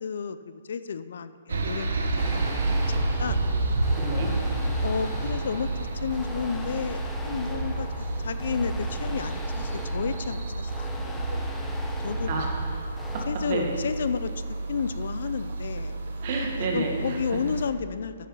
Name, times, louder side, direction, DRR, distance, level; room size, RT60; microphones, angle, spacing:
voice 1, 0.0-2.7 3.2-3.4 4.8-12.3 13.3-14.3 14.7-16.0 16.6-18.1, left 6 dB, 65° left, 13 dB, 0.6 m, -32 dB
sound 1, 1.5-17.7, right 2 dB, 80° right, 1.4 m, -30 dB
sound 2, 2.2-13.3, left 2 dB, 5° left, 0.7 m, -41 dB
voice 2, 4.0-4.3 12.3-13.2 13.5-13.8 16.2-17.4, right 3 dB, 40° right, 0 dB, 1.9 m, -31 dB
10.0 x 7.7 x 5.7 m, 2.2 s
hypercardioid pair, 165°, 0 cm